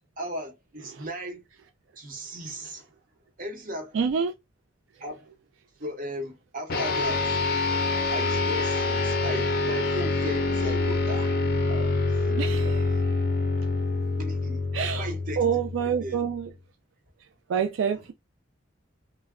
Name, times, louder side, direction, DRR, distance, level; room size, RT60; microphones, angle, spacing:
voice 1, 0.2-1.4 2.0-2.9 3.4-3.9 5.0-5.3 5.8-7.3 8.1-11.4 12.3-12.7 13.6-13.8 14.2-14.6 15.0-16.6 17.9-18.0, equal, 45° right, 0.9 m, -37 dB
voice 2, 3.9-4.3 11.7-11.9 12.4-13.0 14.7-15.1 15.4-16.5 17.5-18.1, right 7 dB, 75° right, 0.3 m, -27 dB
sound 1, 6.7-16.4, left 3 dB, 50° left, 0.5 m, -26 dB
2.2 x 2.1 x 3.5 m
head